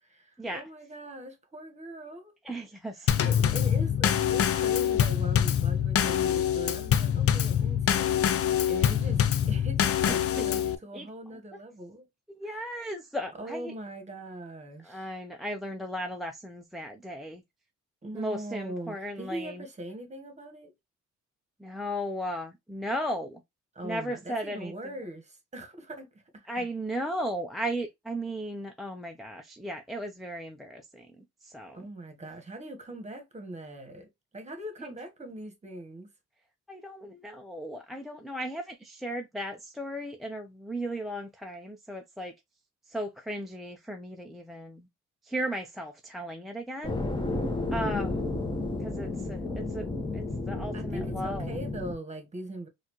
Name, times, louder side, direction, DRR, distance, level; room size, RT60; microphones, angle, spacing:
voice 1, 0.0-2.3 3.0-12.1 12.4-12.7 13.4-15.1 18.0-20.7 23.7-26.6 31.7-36.1 50.7-52.7, right 1 dB, 25° right, 1.3 m, -41 dB
voice 2, 2.4-3.1 9.8-9.9 10.9-11.1 12.3-13.7 14.8-17.4 18.1-19.6 21.6-23.4 23.8-24.7 26.5-31.1 31.4-31.9 36.7-42.3 42.9-44.9 45.2-46.9 47.7-48.3 48.8-49.9 50.1-51.6, equal, ahead, 0.5 m, -36 dB
Drum kit / Snare drum / Bass drum, 3.1-10.8, left 9 dB, 50° left, 0.5 m, -25 dB
sound 1, 46.8-51.9, left 2 dB, 15° left, 1.1 m, -32 dB
4.1 x 2.5 x 3.0 m
cardioid pair, 90°, 30 cm